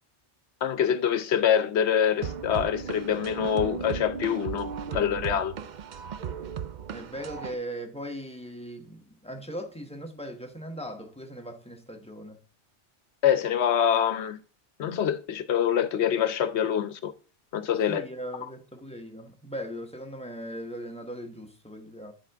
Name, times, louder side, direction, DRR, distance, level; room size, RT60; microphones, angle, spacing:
voice 1, 0.6-5.5 13.2-14.4 14.8-17.1 17.5-18.0, left 9 dB, 75° left, 1.0 m, -25 dB
sound 1, 2.2-7.5, right 7 dB, 55° right, 0.5 m, -36 dB
voice 2, 4.9-5.4 6.9-12.4 17.9-22.1, equal, 5° left, 1.0 m, -39 dB
10.5 x 5.1 x 3.4 m
omnidirectional pair, 1.2 m